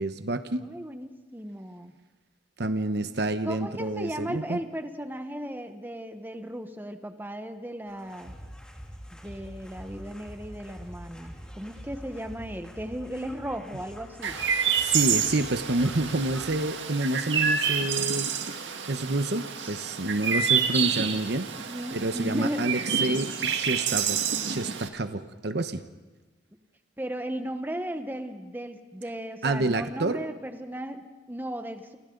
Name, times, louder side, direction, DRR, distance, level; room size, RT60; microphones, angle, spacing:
voice 1, 0.0-0.7 2.6-4.6 14.8-18.3 18.9-21.5 21.9-25.8 29.4-30.2, right 2 dB, 65° right, 9 dB, 1.1 m, -28 dB
voice 2, 0.6-1.9 3.4-8.3 9.2-14.4 21.7-22.8 27.0-32.0, equal, 10° right, 7 dB, 1.2 m, -36 dB
sound 1, 7.9-16.5, equal, 5° left, 3.0 m, -45 dB
Chirp tweet, 14.2-24.9, right 7 dB, 90° right, 1.9 m, -28 dB
29.0 x 28.5 x 4.0 m, 1.2 s
head